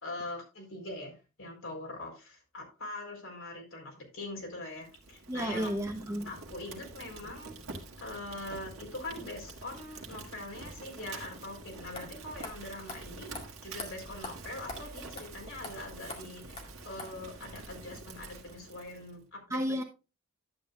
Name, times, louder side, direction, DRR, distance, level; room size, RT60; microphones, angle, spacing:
voice 1, 0.0-5.7 6.3-7.5 8.0-13.3 13.6-19.8, left 2 dB, 70° left, 4.1 m, -43 dB
Fire, 4.8-19.2, right 3 dB, 70° right, 1.8 m, -47 dB
voice 2, 5.3-6.3 19.5-19.8, equal, 15° right, 1.0 m, -32 dB
sound 1, 11.5-11.6 11.9-12.1 12.4-12.5 12.9-13.0 13.3-13.5 13.8-13.9 14.2-14.3 14.7-14.8 15.2-15.3 15.6-15.7 16.1-16.2 16.6-16.7 17.0-17.1, left 2 dB, 30° left, 2.0 m, -41 dB
Scratching (performance technique), 12.2-12.6 13.0-13.3 14.0-14.3 14.7-15.0 15.7-16.1 16.4-16.7 17.4-17.7 18.1-18.4, equal, 45° right, 1.8 m, -53 dB
11.5 x 8.6 x 2.4 m
head